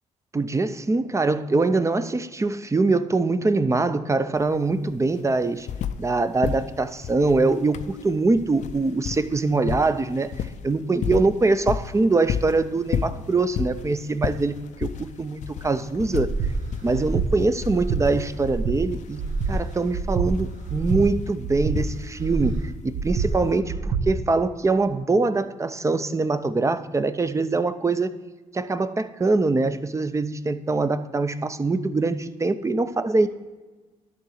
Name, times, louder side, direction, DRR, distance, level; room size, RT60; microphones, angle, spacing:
voice 1, 0.3-5.7 6.0-10.3 10.6-16.3 16.8-19.2 19.5-22.6 23.0-28.1 28.5-33.3, right 3 dB, 20° right, 12 dB, 0.6 m, -23 dB
sound 1, 4.4-4.5 4.7-6.1 6.4-22.4 23.4-23.5, left 8 dB, 65° left, 0.5 m, -33 dB
Breathing, 16.2-16.5 16.9-17.3 17.7-18.0 18.4-18.8 19.2-19.5 19.9-20.3 20.7-21.0 21.4-21.8 22.2-22.5 22.9-23.3 23.7-24.0, right 6 dB, 70° right, 0.9 m, -26 dB
11.0 x 3.8 x 6.5 m, 1.2 s
supercardioid pair, 70°, 14 cm